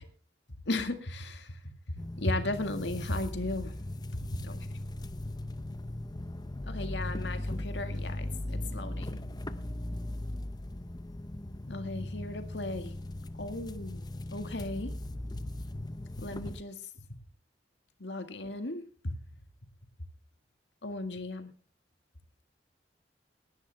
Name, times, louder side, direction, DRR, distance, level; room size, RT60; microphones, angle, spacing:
voice 1, 0.7-1.6 2.2-3.7 4.3-4.8 6.7-9.2 11.7-12.9 13.4-14.0 14.3-14.9 16.2-16.7 17.1-17.2 18.0-19.2 20.8-21.5, left 2 dB, 80° left, 7 dB, 1.9 m, -36 dB
sound 1, 2.0-16.6, left 1 dB, 25° left, 0.7 m, -38 dB
19.0 x 11.5 x 3.4 m, 0.42 s
head